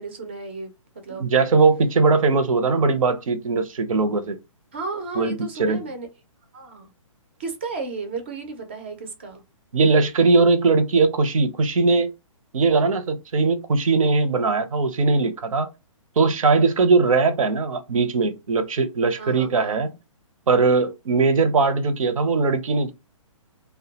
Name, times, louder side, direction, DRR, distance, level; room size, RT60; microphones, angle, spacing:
voice 1, 0.0-1.3 4.7-6.1 6.5-6.9 7.4-9.4 19.2-19.8, right 4 dB, 20° right, 0.3 m, -34 dB
voice 2, 1.1-4.4 5.2-5.3 5.6-5.8 9.7-12.1 12.5-15.7 16.2-19.9 20.5-22.9, right 4 dB, 80° right, 0.6 m, -20 dB
2.2 x 2.1 x 2.8 m
hypercardioid pair, 170°, 17 cm